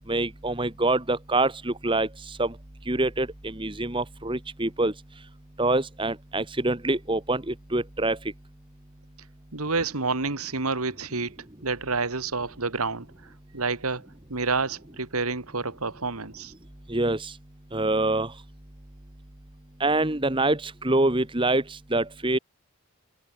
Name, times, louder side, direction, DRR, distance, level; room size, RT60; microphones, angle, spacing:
voice 1, 0.1-2.6 2.8-5.3 5.6-8.3 16.9-17.4 17.7-18.4 19.8-22.4, right 2 dB, 20° right, 1.5 m, -26 dB
voice 2, 9.5-16.5, right 4 dB, 85° right, 2.2 m, -29 dB
head